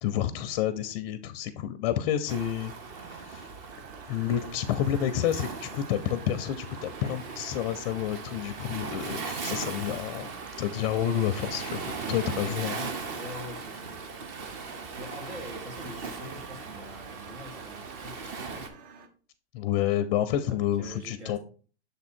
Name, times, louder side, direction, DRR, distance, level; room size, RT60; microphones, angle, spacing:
voice 1, 0.0-2.7 3.0-3.5 4.1-10.3 10.6-12.9 19.5-21.4, left 11 dB, 40° left, 11 dB, 0.4 m, -29 dB
Waves surf, 2.3-18.7, right 4 dB, 35° right, 0.8 m, -39 dB
sound 1, 3.7-19.1, right 5 dB, 55° right, 1.1 m, -50 dB
voice 2, 12.3-12.7 13.1-14.5 14.9-18.7 20.0-20.1 20.4-21.4, equal, 80° right, 2 dB, 2.6 m, -45 dB
6.7 x 3.6 x 4.3 m, 0.39 s
hypercardioid pair, 145°, 35 cm